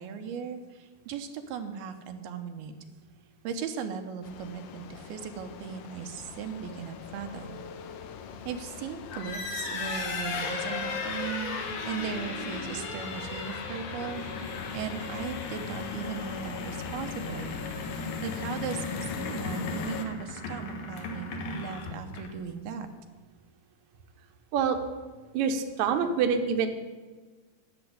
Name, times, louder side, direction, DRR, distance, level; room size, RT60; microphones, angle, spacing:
voice 1, 0.0-2.7 3.4-7.6 8.5-17.6 18.2-22.9, right 7 dB, 90° right, 6 dB, 2.9 m, -38 dB
sound 1, 4.2-20.1, left 7 dB, 90° left, 2.8 m, -41 dB
sound 2, 9.1-22.5, left 3 dB, 75° left, 3.2 m, -36 dB
voice 2, 25.3-26.7, right 6 dB, 65° right, 5 dB, 2.0 m, -26 dB
11.0 x 7.0 x 9.3 m, 1.4 s
omnidirectional pair, 4.2 m